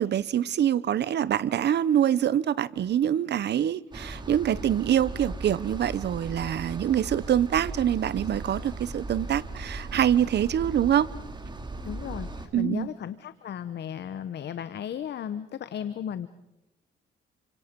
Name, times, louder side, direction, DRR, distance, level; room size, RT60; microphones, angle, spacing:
voice 1, 0.0-11.1 12.5-12.9, right 10 dB, 60° right, 0.9 m, -25 dB
sound 1, 3.9-12.5, right 2 dB, 20° right, 2.8 m, -38 dB
voice 2, 11.8-16.3, left 9 dB, 60° left, 1.0 m, -35 dB
29.0 x 25.5 x 5.4 m
cardioid pair, 90°, 20 cm